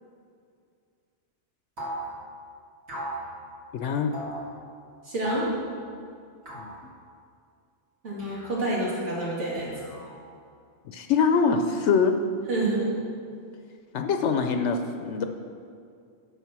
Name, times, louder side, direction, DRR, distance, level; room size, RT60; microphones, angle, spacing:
sound 1, 1.8-2.1 2.9-3.2 4.1-4.4 5.2-5.6 6.5-6.8 8.2-8.7 9.5-10.2, right 1 dB, 65° right, 2.3 m, -37 dB
voice 1, 3.7-4.1 6.5-6.7 10.9-12.2 13.9-15.2, left 5 dB, 75° left, 6 dB, 0.9 m, -24 dB
voice 2, 5.0-5.5 8.0-9.7 12.5-12.9, right 2 dB, 80° right, -6 dB, 2.8 m, -28 dB
9.1 x 6.6 x 5.9 m, 2.3 s
omnidirectional pair, 1.2 m